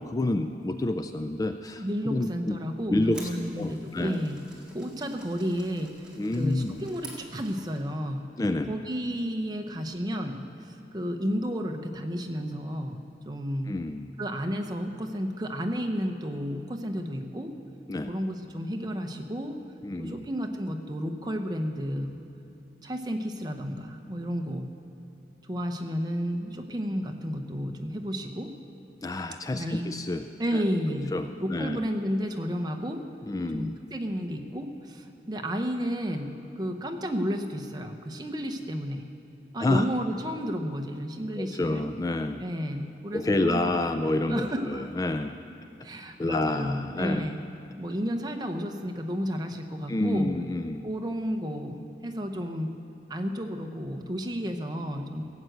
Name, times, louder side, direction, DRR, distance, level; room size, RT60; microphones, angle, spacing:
voice 1, 0.0-2.6 2.9-4.3 6.2-6.9 8.4-8.7 13.7-14.1 17.9-18.1 19.8-20.3 29.0-30.2 30.5-31.9 33.3-33.7 39.6-39.9 41.4-42.4 43.1-45.4 46.2-47.4 49.9-50.9, left 2 dB, 20° left, 8 dB, 0.3 m, -29 dB
voice 2, 1.8-4.4 4.7-8.3 8.7-13.0 13.2-13.7 14.2-17.5 18.1-19.6 20.0-22.2 22.8-24.7 25.5-28.5 29.5-29.9 30.4-31.1 31.4-33.0 33.5-39.0 39.5-41.8 42.4-44.9 45.8-47.4 47.8-50.3 50.8-52.7 53.1-55.2, equal, 25° right, 4 dB, 0.9 m, -32 dB
sound 1, 2.8-7.9, right 2 dB, 5° right, 1.8 m, -49 dB
17.0 x 8.0 x 7.8 m, 2.8 s
head